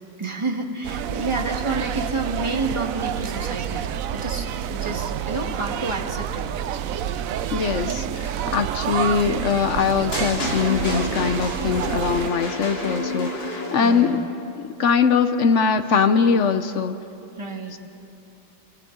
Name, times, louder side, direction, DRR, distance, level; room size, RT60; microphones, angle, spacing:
voice 1, 0.2-6.4 13.8-14.2 17.4-17.8, right 3 dB, 15° right, 2 dB, 1.4 m, -29 dB
sound 1, 0.8-12.3, right 9 dB, 70° right, 0.8 m, -28 dB
voice 2, 7.5-14.2 14.6-16.9, left 6 dB, 60° left, 9 dB, 0.8 m, -22 dB
sound 2, 10.1-14.4, left 2 dB, 80° left, 3.4 m, -30 dB
29.0 x 25.5 x 3.8 m, 2.8 s
omnidirectional pair, 2.0 m